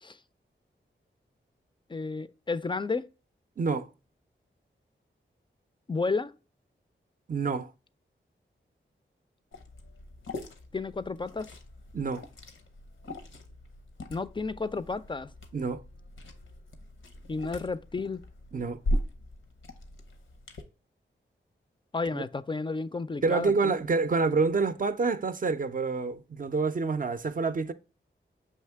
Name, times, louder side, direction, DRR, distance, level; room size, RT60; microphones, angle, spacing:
voice 1, 1.9-3.1 5.9-6.3 10.7-11.5 14.1-15.3 17.3-18.2 21.9-23.8, left 4 dB, 25° left, 0.3 m, -32 dB
voice 2, 3.6-3.9 7.3-7.7 11.9-12.2 15.5-15.8 18.5-18.8 22.1-22.3 23.2-27.7, right 4 dB, 45° right, 0.5 m, -27 dB
Liquid, 9.5-20.6, left 1 dB, 85° left, 0.7 m, -39 dB
5.6 x 2.8 x 3.4 m
cardioid pair, 45°, 20 cm